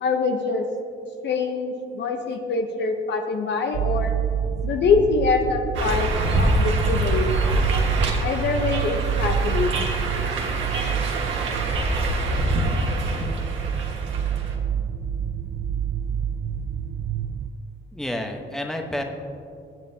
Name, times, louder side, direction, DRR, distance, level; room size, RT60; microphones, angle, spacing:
voice 1, 0.0-0.6 1.2-4.1 4.6-6.1 6.3-7.6 8.2-10.2, left 4 dB, 65° left, 4 dB, 0.9 m, -24 dB
sound 1, 3.7-17.5, right 8 dB, 55° right, 0.4 m, -28 dB
sound 2, 5.7-14.5, right 1 dB, 75° right, 1.7 m, -25 dB
voice 2, 17.9-19.0, left 1 dB, ahead, 2 dB, 1.1 m, -29 dB
21.0 x 7.5 x 2.8 m, 2.5 s
cardioid pair, 90°, 20 cm